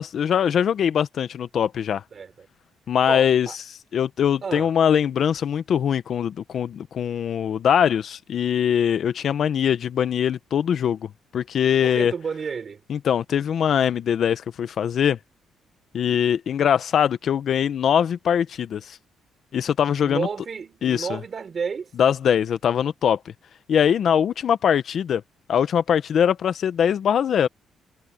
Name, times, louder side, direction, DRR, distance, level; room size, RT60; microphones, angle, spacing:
voice 1, 0.0-2.0 2.9-12.1 12.9-15.2 15.9-19.0 19.5-20.3 20.8-21.2 22.0-23.2 23.7-25.2 25.5-27.5, left 8 dB, 60° left, 1.0 m, -22 dB
voice 2, 2.1-2.5 3.1-3.6 4.4-4.7 11.8-12.8 20.0-21.9, right 6 dB, 45° right, 3.7 m, -31 dB
cardioid pair, 90°, 0 cm